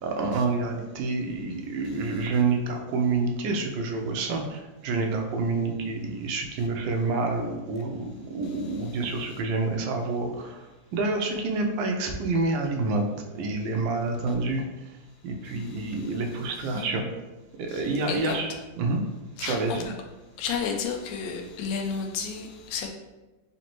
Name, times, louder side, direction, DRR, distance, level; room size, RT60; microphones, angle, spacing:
voice 1, 0.0-10.6 10.9-13.0 13.3-14.6 15.2-17.0 17.6-19.0 19.4-19.9, right 3 dB, 85° right, 3 dB, 1.3 m, -28 dB
voice 2, 16.5-16.9 17.7-18.4 19.4-19.9 20.4-22.9, left 6 dB, 80° left, 3 dB, 1.3 m, -32 dB
4.0 x 3.2 x 2.9 m, 1.1 s
omnidirectional pair, 2.0 m